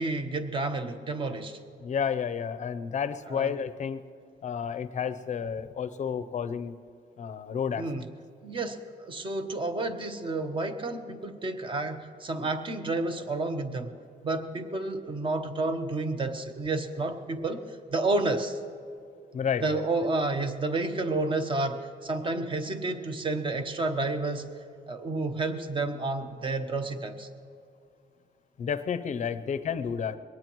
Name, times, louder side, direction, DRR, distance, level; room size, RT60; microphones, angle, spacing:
voice 1, 0.0-1.6 3.3-3.5 7.8-8.0 8.4-13.9 14.2-17.6 17.9-18.6 19.6-24.5 24.9-27.3, right 2 dB, 30° right, 7 dB, 1.0 m, -30 dB
voice 2, 1.8-4.0 4.4-6.7 7.2-7.8 19.3-19.9 28.6-30.2, left 7 dB, 45° left, 13 dB, 0.6 m, -31 dB
22.0 x 18.5 x 3.1 m, 2.5 s
cardioid pair, 155°, 18 cm